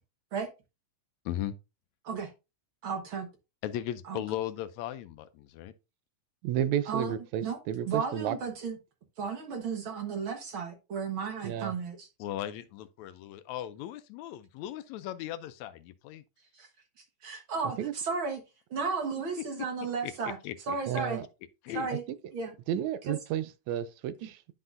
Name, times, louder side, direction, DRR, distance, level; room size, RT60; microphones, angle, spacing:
voice 1, 1.3-1.6 3.6-5.7 12.2-16.2 20.0-20.1 20.4-20.8 21.6-21.9, left 12 dB, 80° left, 1.8 m, -37 dB
voice 2, 2.8-3.3 4.1-4.2 6.9-7.1 7.4-7.6 7.8-8.8 9.2-12.1 16.5-16.7 17.2-18.4 18.7-20.4 20.7-21.2 21.7-22.0 22.3-22.5 23.1-23.2, right 5 dB, 55° right, 1.7 m, -34 dB
voice 3, 6.4-8.4 11.4-11.7 17.6-17.9 20.9-21.3 22.7-24.5, right 10 dB, 80° right, 1.9 m, -32 dB
10.5 x 5.7 x 2.6 m
omnidirectional pair, 3.4 m